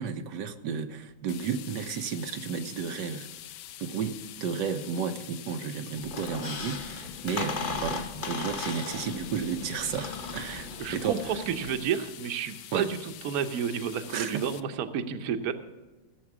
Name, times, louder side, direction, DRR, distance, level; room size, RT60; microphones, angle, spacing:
voice 1, 0.0-3.3 3.8-11.3 12.7-12.9 14.1-14.5, right 6 dB, 85° right, 7 dB, 1.5 m, -33 dB
sound 1, 1.3-14.6, left 12 dB, 80° left, 1.2 m, -46 dB
Squeak, 6.0-11.8, left 4 dB, 40° left, 0.9 m, -37 dB
voice 2, 10.8-15.5, right 8 dB, 65° right, 9 dB, 1.3 m, -31 dB
16.0 x 7.4 x 6.1 m, 1.2 s
omnidirectional pair, 1.9 m